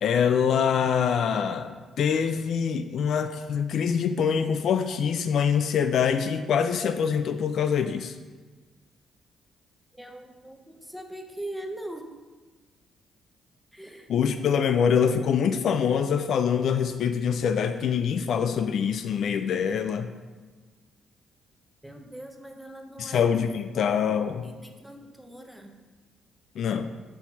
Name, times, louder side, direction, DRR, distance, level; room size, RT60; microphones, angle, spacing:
voice 1, 0.0-8.1 14.1-20.1 23.0-24.5 26.6-26.9, left 7 dB, 65° left, 8 dB, 0.3 m, -24 dB
voice 2, 10.0-12.1 13.7-14.1 21.8-23.3 24.4-25.7, right 1 dB, ahead, 3 dB, 0.7 m, -41 dB
4.5 x 4.1 x 5.7 m, 1.3 s
cardioid pair, 90°, 0 cm